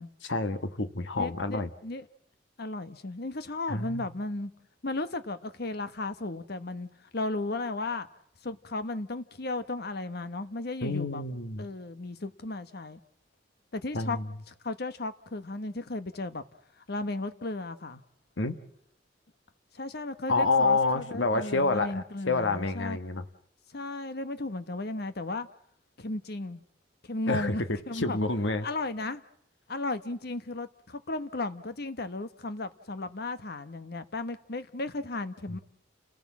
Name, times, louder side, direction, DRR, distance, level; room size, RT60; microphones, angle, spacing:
voice 1, 0.2-1.7 3.7-4.1 10.8-11.7 13.9-14.3 18.4-18.5 20.3-23.2 27.3-28.7, left 3 dB, 85° left, 1.3 m, -28 dB
voice 2, 1.2-2.1 2.6-4.5 4.8-8.1 8.4-11.2 11.6-13.0 13.7-14.2 14.5-16.4 16.9-18.0 19.7-23.0 23.7-25.5 26.0-26.6 27.0-28.2 28.6-29.2 29.7-35.6, left 2 dB, 60° left, 1.3 m, -35 dB
30.0 x 17.0 x 7.4 m
head